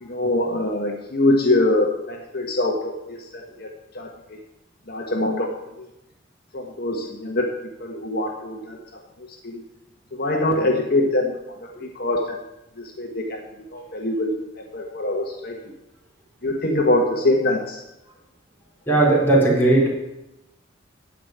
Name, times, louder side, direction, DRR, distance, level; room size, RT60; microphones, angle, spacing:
voice 1, 0.0-4.4 4.9-5.9 6.5-9.6 10.1-12.4 12.8-13.4 13.7-15.7 16.4-17.8, left 2 dB, 55° left, 1 dB, 1.4 m, -24 dB
voice 2, 18.9-19.9, right 2 dB, 10° left, -5 dB, 4.2 m, -17 dB
14.0 x 5.1 x 9.2 m, 0.91 s
head